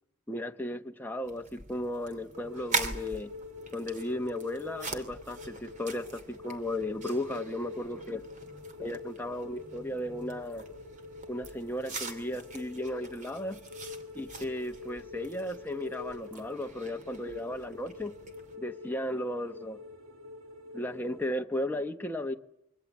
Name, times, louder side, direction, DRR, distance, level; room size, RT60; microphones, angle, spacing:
voice 1, 0.3-3.3 3.7-8.3 8.8-10.7 11.3-13.6 14.1-18.1 18.6-19.8 20.7-22.3, left 1 dB, 10° left, 1.1 m, -35 dB
Eating apple, 1.2-18.6, right 3 dB, 35° right, 2.9 m, -42 dB
sound 1, 2.3-21.3, left 4 dB, 65° right, 3.3 m, -46 dB
27.5 x 24.0 x 8.3 m
head